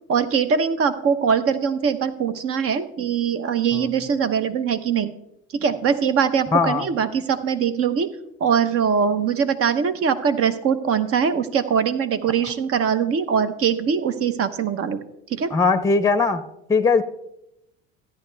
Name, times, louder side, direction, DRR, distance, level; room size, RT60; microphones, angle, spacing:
voice 1, 0.1-5.1 5.5-8.1 8.4-15.0 15.3-15.5, right 7 dB, 50° right, 12 dB, 1.0 m, -22 dB
voice 2, 6.5-6.9 15.5-16.4 16.7-17.0, left 4 dB, 10° left, 13 dB, 0.7 m, -19 dB
13.5 x 10.5 x 3.4 m, 0.82 s
supercardioid pair, 90°, 30 cm